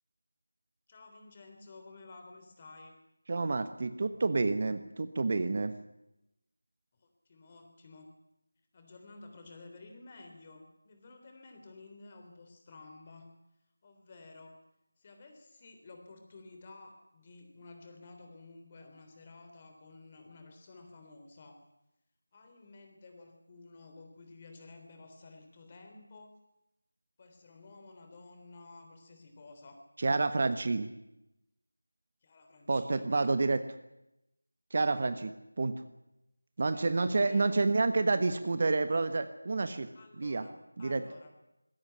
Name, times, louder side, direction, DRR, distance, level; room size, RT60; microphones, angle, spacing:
voice 1, 0.9-3.0 6.9-8.1 8.7-13.3 13.8-14.6 15.0-21.6 22.3-26.3 27.2-29.8 32.2-33.3 36.7-37.5 39.9-41.3, left 3 dB, 25° left, 6 dB, 3.5 m, -53 dB
voice 2, 3.3-5.7 30.0-30.9 32.7-33.6 34.7-35.7 36.6-39.9 40.2-40.5 40.8-41.0, right 3 dB, 40° right, 10 dB, 1.3 m, -29 dB
20.0 x 17.0 x 9.9 m, 0.89 s
figure-of-eight pair, 175°, 0 cm